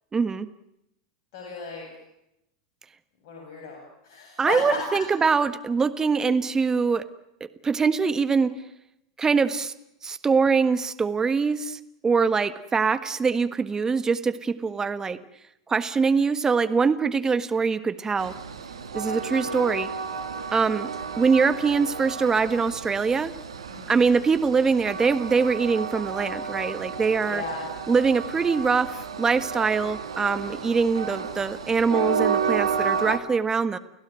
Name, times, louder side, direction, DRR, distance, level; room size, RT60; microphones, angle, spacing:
voice 1, 0.1-0.5 4.4-7.1 7.4-8.5 9.2-9.7 10.0-15.2 15.7-18.3 18.9-19.9 20.5-20.9 21.2-23.3 23.9-27.4 27.9-33.8, right 5 dB, 20° right, 12 dB, 1.5 m, -23 dB
voice 2, 1.3-1.9 3.2-4.8 23.7-24.1 27.2-27.6, left 4 dB, 60° left, 0 dB, 7.8 m, -35 dB
Train, 18.2-33.2, right 6 dB, 85° right, 2.0 m, -31 dB
29.5 x 17.0 x 9.1 m, 0.83 s
hypercardioid pair, 95°, 3 cm